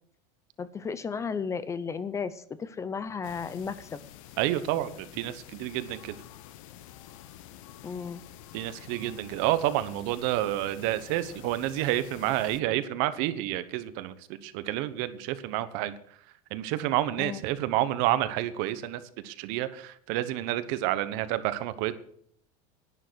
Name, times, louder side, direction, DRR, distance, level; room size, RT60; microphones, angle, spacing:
voice 1, 0.6-4.0 7.8-8.2 17.2-17.4, left 6 dB, 15° left, 15 dB, 0.6 m, -34 dB
sound 1, 3.2-12.6, left 12 dB, 75° left, 1.0 m, -48 dB
voice 2, 4.4-6.1 8.5-16.0 16.5-21.9, right 14 dB, 60° right, 13 dB, 1.1 m, -29 dB
11.0 x 10.0 x 6.3 m, 0.64 s
supercardioid pair, 150°, 17 cm